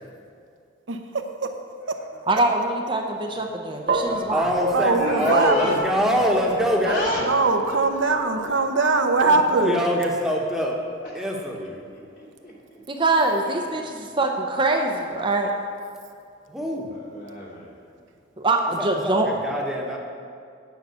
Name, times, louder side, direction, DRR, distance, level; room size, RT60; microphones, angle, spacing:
voice 1, 0.9-1.5 1.9-2.0 4.7-5.8 7.2-9.8, right 3 dB, 85° right, 5 dB, 0.8 m, -22 dB
voice 2, 2.3-4.5 12.9-15.5 18.4-19.3, right 2 dB, 25° right, 2 dB, 0.6 m, -23 dB
sound 1, 3.9-12.2, right 3 dB, 70° right, 1.2 m, -34 dB
voice 3, 4.3-7.1 9.2-10.8 11.1-11.8 16.5-16.9 18.8-20.0, equal, 5° right, -1 dB, 1.1 m, -24 dB
voice 4, 5.0-5.8 6.4-7.4 7.7-8.3 11.1-11.3 12.1-12.8 13.5-13.8 16.9-17.7, left 1 dB, 50° left, -4 dB, 2.5 m, -32 dB
9.3 x 5.7 x 8.0 m, 2.3 s
head